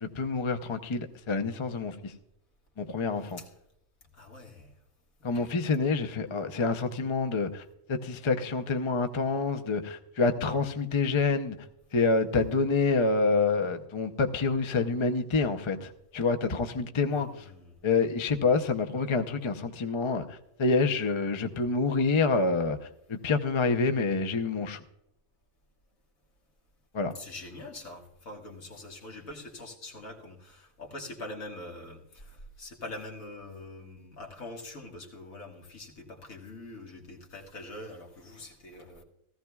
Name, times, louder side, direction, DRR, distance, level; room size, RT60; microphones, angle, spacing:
voice 1, 0.0-2.1 2.8-3.4 5.2-7.6 7.9-11.6 11.9-17.3 17.8-22.8 23.1-24.8 26.9-27.1, left 4 dB, 35° left, 0.5 m, -27 dB
voice 2, 3.2-3.5 4.1-4.7 5.2-5.5 17.1-17.8 27.1-39.0, left 2 dB, 75° left, 2.1 m, -44 dB
17.0 x 14.5 x 2.3 m
omnidirectional pair, 1.4 m